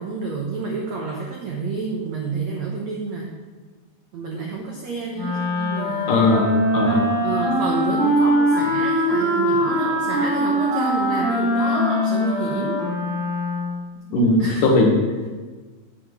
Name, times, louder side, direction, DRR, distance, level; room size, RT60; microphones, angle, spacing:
voice 1, 0.0-3.3 4.1-6.1 7.2-12.8 14.1-14.8, right 4 dB, 85° right, -1 dB, 1.5 m, -29 dB
Wind instrument woodwind instrument, 5.1-13.8, equal, 35° right, 3.2 m, -22 dB
voice 2, 6.1-7.1 14.1-15.0, left 2 dB, 70° left, 0 dB, 2.3 m, -18 dB
8.0 x 7.2 x 6.1 m, 1.4 s
omnidirectional pair, 4.8 m